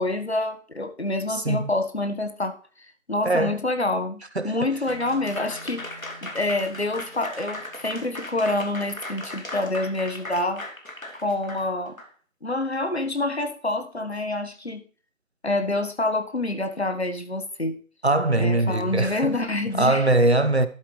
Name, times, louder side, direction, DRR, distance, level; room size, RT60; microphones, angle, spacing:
voice 1, 0.0-2.6 3.1-10.6 11.1-12.0 12.4-14.8 15.4-17.8 18.4-20.1, left 2 dB, 50° left, 1.5 m, -27 dB
voice 2, 1.3-1.7 3.2-3.6 4.4-4.6 18.0-19.3 19.7-20.7, right 2 dB, 55° right, 0.9 m, -21 dB
Applause / Crowd, 4.9-12.1, left 1 dB, 80° left, 2.7 m, -38 dB
sound 1, 4.9-10.0, equal, 20° left, 2.2 m, -49 dB
12.0 x 8.0 x 3.3 m
figure-of-eight pair, 170°, 40 cm